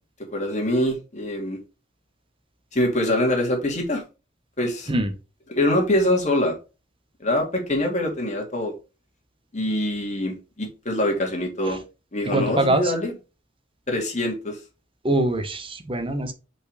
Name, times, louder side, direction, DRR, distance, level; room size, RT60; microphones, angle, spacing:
voice 1, 0.3-1.6 2.7-4.0 4.6-4.9 5.5-6.6 7.2-8.7 9.5-11.8 12.1-13.1 13.9-14.6, left 1 dB, 40° left, 2 dB, 2.2 m, -24 dB
voice 2, 12.2-12.9 15.0-16.3, right 1 dB, 30° right, 8 dB, 1.2 m, -23 dB
5.4 x 4.6 x 5.0 m, 0.31 s
head